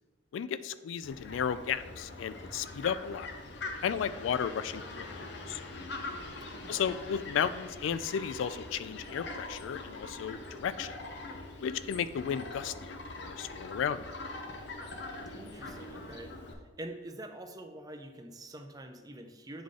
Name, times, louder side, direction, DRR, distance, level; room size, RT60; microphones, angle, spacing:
voice 1, 0.3-3.3 3.8-5.6 6.7-10.9 11.6-14.1, left 8 dB, 80° left, 14 dB, 0.3 m, -34 dB
Fowl, 1.0-16.5, left 2 dB, 65° left, 0.8 m, -43 dB
voice 2, 6.5-6.9 15.3-16.3 16.8-19.6, right 1 dB, 20° right, 6 dB, 0.5 m, -45 dB
8.7 x 3.7 x 3.7 m, 1.3 s
head